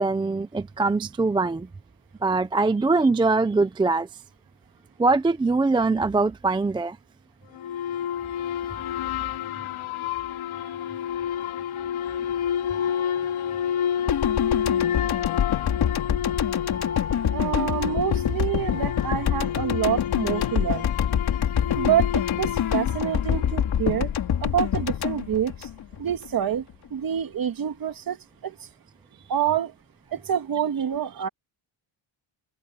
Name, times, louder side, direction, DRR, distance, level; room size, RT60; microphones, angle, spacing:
voice 1, 0.0-1.7 2.2-4.1 5.0-7.0 10.7-10.8, right 3 dB, 10° right, 0.4 m, -22 dB
sound 1, 7.6-24.2, left 9 dB, 80° left, 4.4 m, -30 dB
sound 2, 8.7-9.9 12.7-14.3 16.7-20.3 20.7-21.6, left 6 dB, 25° left, 4.9 m, -43 dB
sound 3, 14.1-26.3 26.5-26.7, left 9 dB, 50° left, 3.0 m, -26 dB
voice 2, 17.3-20.9 21.8-24.1 24.4-25.7 26.0-26.6 26.9-28.2 28.4-28.5 29.3-29.7 30.1-31.3, right 10 dB, 45° right, 2.0 m, -27 dB
cardioid pair, 180°, 48 cm